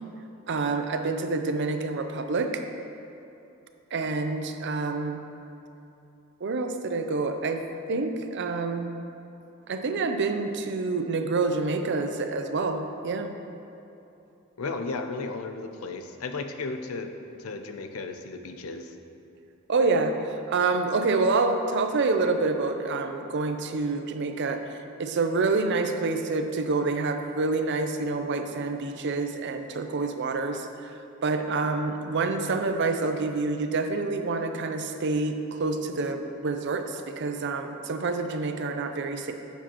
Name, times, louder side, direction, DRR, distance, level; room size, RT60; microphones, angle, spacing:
voice 1, 0.5-2.6 3.9-5.2 6.4-7.6 7.9-8.9 9.7-13.3 19.7-30.9 31.2-39.3, right 3 dB, 55° right, 6 dB, 0.5 m, -27 dB
voice 2, 14.6-17.1 17.4-18.9, left 3 dB, 90° left, 6 dB, 0.6 m, -34 dB
10.0 x 7.2 x 3.0 m, 2.8 s
head